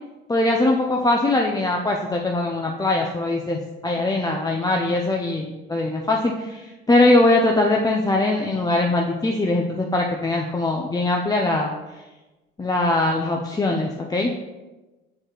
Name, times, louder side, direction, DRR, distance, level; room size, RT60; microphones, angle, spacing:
voice 1, 0.3-11.7 12.6-14.3, left 2 dB, 10° left, 0 dB, 0.6 m, -21 dB
7.6 x 4.3 x 3.1 m, 1.1 s
hypercardioid pair, 65°, 31 cm